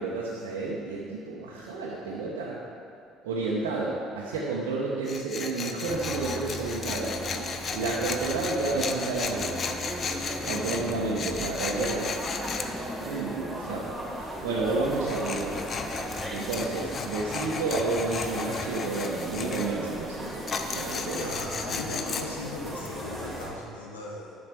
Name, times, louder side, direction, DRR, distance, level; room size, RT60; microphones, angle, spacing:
voice 1, 0.0-2.6 3.2-7.2 7.7-9.6 10.5-12.2 13.0-15.8 16.3-21.3, right 3 dB, 70° right, -5 dB, 1.0 m, -31 dB
Tools, 5.1-12.7 14.9-19.7 20.5-22.2, left 5 dB, 40° left, 0.7 m, -35 dB
sound 1, 5.8-23.5, equal, ahead, 2.3 m, -37 dB
voice 2, 21.1-24.3, left 2 dB, 85° left, -2 dB, 1.0 m, -38 dB
10.5 x 6.5 x 4.6 m, 2.5 s
figure-of-eight pair, 55°, 0 cm